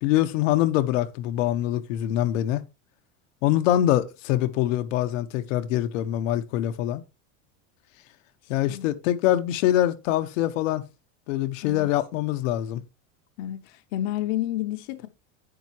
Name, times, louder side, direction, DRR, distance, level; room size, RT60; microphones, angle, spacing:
voice 1, 0.0-2.6 3.4-7.0 8.5-10.8 11.3-12.8, left 13 dB, 80° left, 1.2 m, -24 dB
voice 2, 13.4-15.1, left 13 dB, 50° left, 0.9 m, -30 dB
10.5 x 8.5 x 3.0 m
cardioid pair, 175°, 38 cm